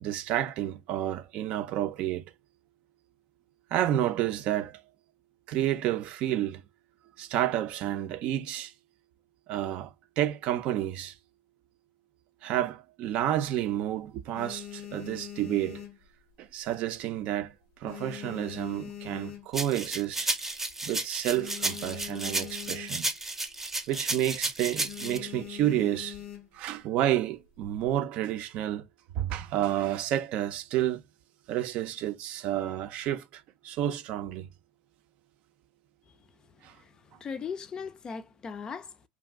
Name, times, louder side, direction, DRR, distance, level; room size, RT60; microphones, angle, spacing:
voice 1, 0.0-2.3 3.7-4.8 5.5-6.6 7.2-8.7 9.5-11.2 12.4-15.8 16.4-20.3 20.8-23.1 23.9-26.2 26.5-28.8 29.2-31.0 31.5-34.5 36.6-36.8, right 12 dB, 55° right, 0.5 m, -30 dB
sound 1, 13.0-13.8 14.2-16.7 16.9-17.3 17.6-19.9 20.3-20.4 20.6-20.7 21.0-23.2 23.6-23.8 24.1-24.4 24.8-26.7 27.4-28.0, left 11 dB, 75° left, 0.6 m, -43 dB
sound 2, 19.5-25.2, right 2 dB, 10° right, 0.7 m, -32 dB
voice 2, 37.2-39.1, left 6 dB, 30° left, 0.4 m, -38 dB
2.5 x 2.3 x 3.4 m
hypercardioid pair, 95°, 3 cm